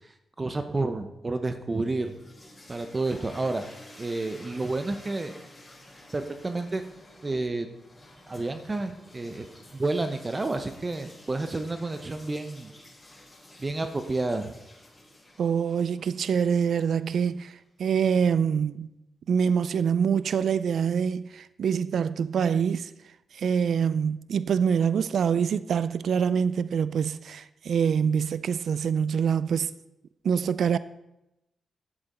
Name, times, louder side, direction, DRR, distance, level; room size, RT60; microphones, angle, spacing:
voice 1, 0.4-2.1 2.7-3.7 4.0-5.3 6.1-6.8 7.2-7.7 8.3-9.4 9.8-12.7 13.6-14.5, right 2 dB, 30° right, 0.8 m, -30 dB
sound 1, 1.7-17.7, left 1 dB, 20° left, 3.9 m, -51 dB
voice 2, 15.4-18.9 19.3-22.9 23.3-29.7 30.2-30.8, right 7 dB, 75° right, 0.3 m, -25 dB
11.5 x 7.8 x 4.3 m
cardioid pair, 75°, 0 cm